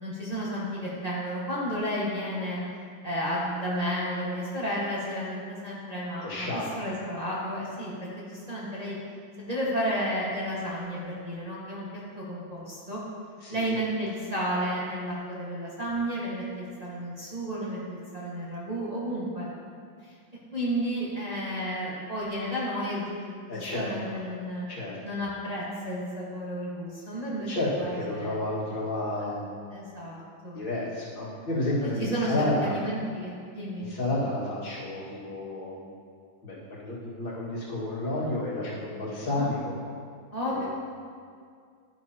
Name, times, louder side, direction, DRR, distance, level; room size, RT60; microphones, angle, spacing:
voice 1, 0.0-2.6 3.0-6.5 6.8-8.9 9.4-11.9 12.2-13.0 13.5-19.5 20.5-23.4 23.7-24.7 25.0-28.4 29.7-30.6 32.0-32.3 32.6-33.9 39.3-39.5 40.3-40.7, equal, 20° right, -8 dB, 1.5 m, -32 dB
voice 2, 6.2-6.8 13.4-13.8 23.5-24.2 24.7-25.0 27.5-29.5 30.5-32.7 33.8-35.9 36.4-39.8 40.4-40.7, left 1 dB, 70° left, -7 dB, 2.7 m, -31 dB
11.0 x 9.7 x 2.9 m, 2.2 s
omnidirectional pair, 2.2 m